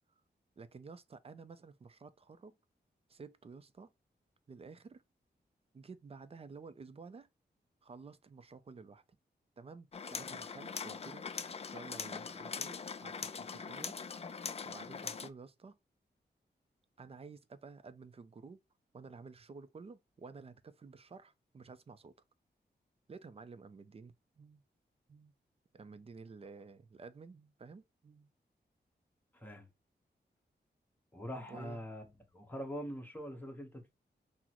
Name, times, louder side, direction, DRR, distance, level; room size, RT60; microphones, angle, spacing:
voice 1, 0.6-2.6 3.1-3.9 4.5-5.0 5.7-7.3 7.8-9.0 9.6-12.7 13.0-14.0 14.6-15.8 17.0-18.6 18.9-22.1 23.1-24.6 25.1-25.3 25.7-28.3 31.5-31.8, right 4 dB, 35° right, 0.4 m, -52 dB
sound 1, 9.9-15.3, left 5 dB, 35° left, 0.4 m, -42 dB
voice 2, 29.3-29.6 31.1-32.0 32.3-33.9, equal, 10° left, 1.1 m, -43 dB
6.0 x 2.1 x 2.9 m
wide cardioid pair, 125°, 18 cm